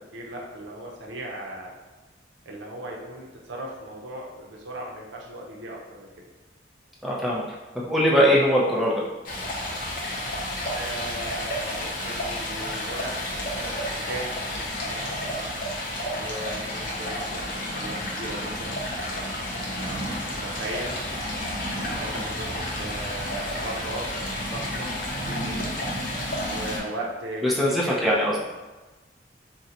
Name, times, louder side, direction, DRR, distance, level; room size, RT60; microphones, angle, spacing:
voice 1, 0.0-1.8 2.5-6.1 10.7-15.5 16.2-21.0 21.7-24.9 25.2-25.7 26.5-28.1, right 1 dB, 90° right, -2 dB, 0.6 m, -38 dB
voice 2, 7.0-7.4 7.7-9.0 27.4-28.3, equal, ahead, -5 dB, 0.5 m, -21 dB
Stream, 9.2-26.8, left 1 dB, 45° left, 0.6 m, -31 dB
3.8 x 2.1 x 2.8 m, 1.2 s
head